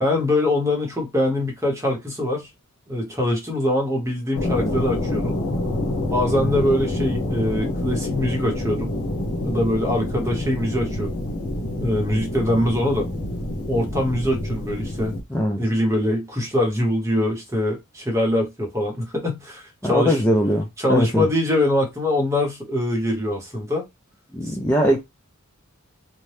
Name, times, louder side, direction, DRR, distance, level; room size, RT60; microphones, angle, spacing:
voice 1, 0.0-2.5 2.9-5.4 6.1-8.9 9.4-11.1 11.8-13.1 13.7-15.1 15.6-20.2 20.8-23.9 24.4-24.6, left 1 dB, 15° right, 0.8 m, -23 dB
sound 1, 4.3-15.2, left 1 dB, 75° left, 0.9 m, -27 dB
voice 2, 15.3-15.6 19.8-21.3 24.3-25.0, equal, 10° left, 0.4 m, -21 dB
2.7 x 2.1 x 3.2 m
head